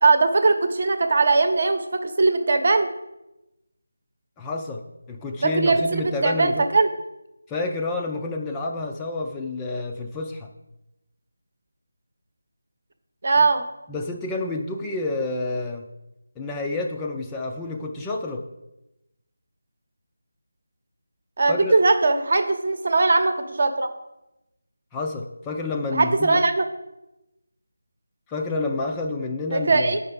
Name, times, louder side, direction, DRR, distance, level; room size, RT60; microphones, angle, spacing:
voice 1, 0.0-2.9 5.4-6.9 13.2-13.7 21.4-23.9 25.9-26.7 29.5-30.0, right 3 dB, 50° right, 9 dB, 0.9 m, -20 dB
voice 2, 4.4-4.8 5.1-6.6 7.5-10.5 13.9-15.9 16.4-18.4 21.5-21.7 24.9-26.4 28.3-30.0, left 3 dB, 10° left, 1 dB, 0.4 m, -29 dB
8.6 x 5.5 x 5.3 m, 0.93 s
figure-of-eight pair, 170°, 0 cm